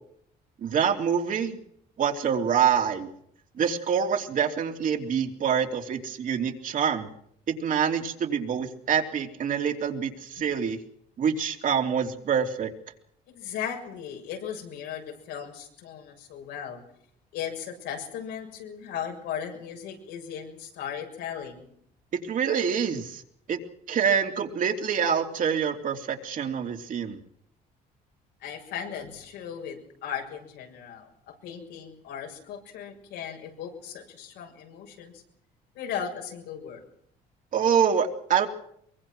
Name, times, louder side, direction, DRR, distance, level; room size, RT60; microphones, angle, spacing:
voice 1, 0.6-1.6 2.0-3.1 3.6-7.1 7.5-10.8 11.2-12.7 22.1-23.2 23.5-23.6 23.9-27.2 37.5-38.5, right 7 dB, 50° right, 4 dB, 3.3 m, -26 dB
voice 2, 13.3-16.8 17.3-21.7 28.4-35.2 35.8-36.8, left 8 dB, 85° left, 3 dB, 7.1 m, -37 dB
23.5 x 23.5 x 6.2 m, 0.68 s
cardioid pair, 110°, 17 cm